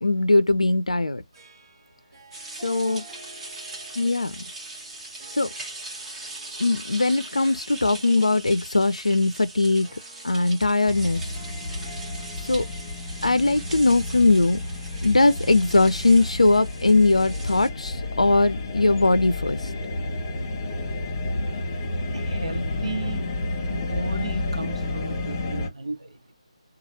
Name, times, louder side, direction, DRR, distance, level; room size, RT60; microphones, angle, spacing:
voice 1, 0.0-1.2 2.5-3.0 4.0-4.4 5.3-5.5 6.6-10.0 10.2-11.2 12.4-12.7 13.2-14.6 15.0-19.7, left 2 dB, 80° left, 0.5 m, -20 dB
Harp, 1.3-18.1, right 4 dB, 35° right, 1.7 m, -51 dB
sound 1, 2.3-17.7, right 2 dB, 10° right, 1.0 m, -40 dB
sound 2, 10.9-25.7, left 2 dB, 35° left, 1.1 m, -31 dB
voice 2, 22.1-23.3 23.6-26.3, right 3 dB, 65° right, 0.9 m, -34 dB
3.1 x 2.3 x 4.0 m
figure-of-eight pair, 150°, 3 cm